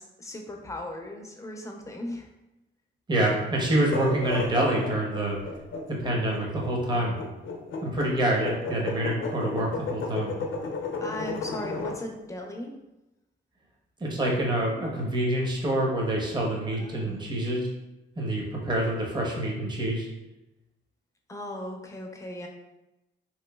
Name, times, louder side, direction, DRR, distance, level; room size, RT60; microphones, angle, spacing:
voice 1, 0.0-2.3 11.0-12.8 16.8-17.3 21.3-22.5, left 1 dB, 15° left, 2 dB, 0.4 m, -37 dB
voice 2, 3.1-5.4 5.9-7.2 7.8-10.3 14.0-17.7 18.2-20.1, right 1 dB, 20° right, -1 dB, 0.7 m, -26 dB
sound 1, 3.8-12.0, left 4 dB, 75° left, 0.6 m, -33 dB
3.5 x 3.0 x 2.2 m, 0.95 s
cardioid pair, 130°, 20 cm